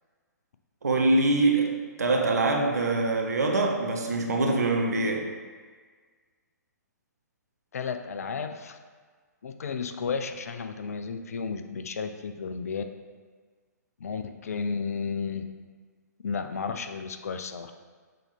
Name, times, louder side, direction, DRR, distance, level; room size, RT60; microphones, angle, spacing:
voice 1, 0.8-5.3, right 2 dB, 65° right, 2 dB, 1.0 m, -24 dB
voice 2, 7.7-8.8 9.4-12.8 14.0-15.4 16.2-17.7, left 5 dB, 55° left, 7 dB, 0.5 m, -33 dB
6.5 x 4.1 x 4.2 m, 1.5 s
figure-of-eight pair, 120°, 10 cm